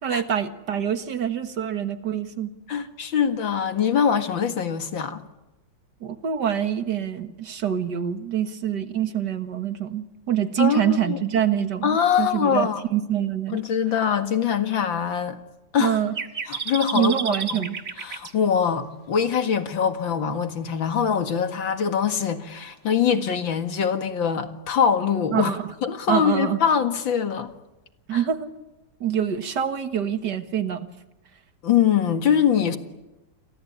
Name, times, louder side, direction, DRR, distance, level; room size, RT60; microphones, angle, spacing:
voice 1, 0.0-2.5 6.0-13.6 15.8-16.1 16.9-17.8 25.3-25.7 26.1-26.6 28.1-28.5 29.0-30.9, right 9 dB, 65° right, 2.1 m, -25 dB
voice 2, 2.7-5.2 10.6-11.2 11.8-12.8 13.5-15.4 15.7-16.0 16.5-17.6 18.0-25.5 25.8-27.5 28.1-28.2 31.6-32.8, left 7 dB, 90° left, 2.6 m, -23 dB
sound 1, 16.1-18.3, right 5 dB, 40° right, 1.8 m, -31 dB
29.5 x 23.5 x 8.7 m
omnidirectional pair, 2.0 m